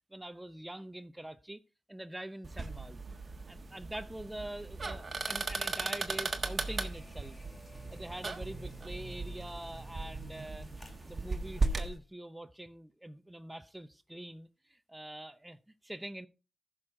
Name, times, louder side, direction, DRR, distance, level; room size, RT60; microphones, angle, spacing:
voice 1, 0.1-1.6 1.9-3.0 3.5-7.4 7.9-16.3, right 1 dB, 10° right, 0.7 m, -45 dB
sound 1, 2.4-11.9, right 3 dB, 35° right, 1.4 m, -37 dB
sound 2, 6.5-12.0, left 2 dB, 30° left, 2.1 m, -58 dB
14.5 x 6.3 x 3.7 m
cardioid pair, 75°, 0 cm